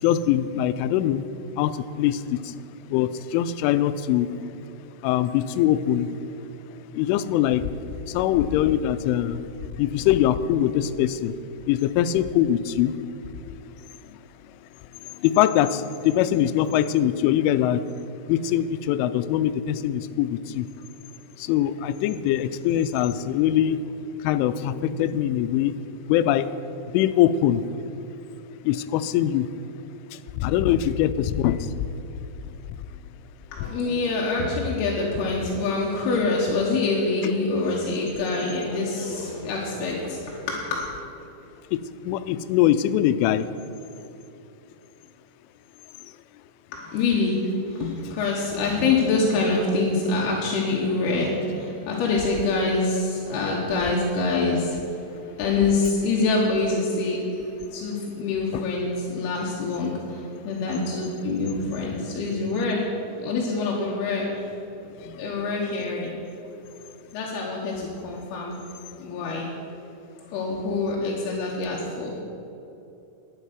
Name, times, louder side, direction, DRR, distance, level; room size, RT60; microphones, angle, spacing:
voice 1, 0.0-1.2 1.6-2.6 2.9-4.3 5.0-6.1 6.9-7.6 8.1-9.4 9.7-11.3 11.7-12.9 14.1-14.2 15.0-17.8 18.3-20.7 21.4-23.8 24.2-25.7 26.1-26.5 26.9-27.6 28.6-29.5 30.1-31.9 33.6-33.7 37.2-37.3 41.7-43.5 58.5-58.7 61.8-62.0 64.9-65.3, left 11 dB, 90° left, 12 dB, 3.0 m, -23 dB
voice 2, 33.5-40.8 46.7-64.4 65.2-66.4 67.1-68.6 68.8-69.5 70.3-72.2, left 3 dB, 70° left, -3 dB, 2.7 m, -25 dB
11.5 x 9.1 x 6.0 m, 2.8 s
omnidirectional pair, 5.5 m